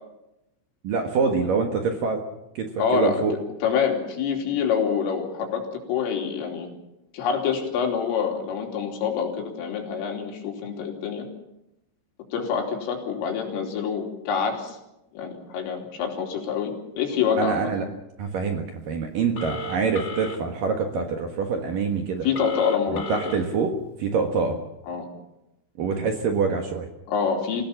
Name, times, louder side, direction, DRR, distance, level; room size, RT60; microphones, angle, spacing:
voice 1, 0.8-2.2 2.5-3.3 17.4-17.8 18.2-22.3 22.9-23.7 24.0-24.6 25.8-26.9, right 5 dB, 60° right, 4 dB, 2.5 m, -25 dB
voice 2, 2.8-3.2 3.6-6.7 7.1-11.3 12.3-14.8 15.1-17.7 22.2-23.2 24.9-25.1 27.1-27.6, left 6 dB, 85° left, 2 dB, 5.7 m, -26 dB
Telephone, 19.3-20.4 22.3-23.4, equal, 40° left, 1.9 m, -34 dB
26.0 x 16.5 x 7.3 m, 0.88 s
omnidirectional pair, 5.7 m